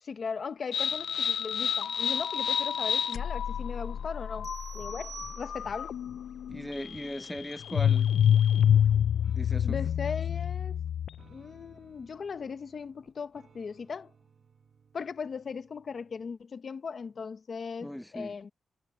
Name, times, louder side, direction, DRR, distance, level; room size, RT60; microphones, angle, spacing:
voice 1, 0.0-4.5 4.7-5.9 9.6-10.8 11.3-14.1 14.9-18.5, left 5 dB, 45° left, 0.9 m, -38 dB
sound 1, 0.7-11.3, left 9 dB, 70° left, 0.3 m, -28 dB
sound 2, 0.9-4.4 4.9-8.9 9.2-16.3, right 6 dB, 50° right, 4.2 m, -62 dB
sound 3, 4.4-6.0, right 8 dB, 85° right, 1.3 m, -47 dB
voice 2, 6.5-8.1 9.3-9.8 17.8-18.3, equal, 5° left, 0.5 m, -38 dB
wide cardioid pair, 165°, 0 cm